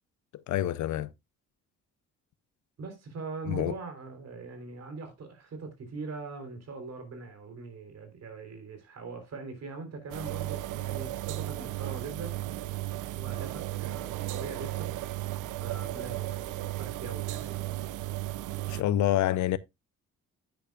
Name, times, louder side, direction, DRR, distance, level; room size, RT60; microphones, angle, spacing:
voice 1, 0.5-1.1 3.5-3.7 18.7-19.6, left 12 dB, 70° left, 0.6 m, -27 dB
voice 2, 2.8-12.4 13.2-14.9 15.6-17.9, right 3 dB, 55° right, 3.6 m, -41 dB
sound 1, 10.1-18.8, right 15 dB, 85° right, 0.6 m, -35 dB
10.0 x 9.2 x 2.4 m
cardioid pair, 90°, 30 cm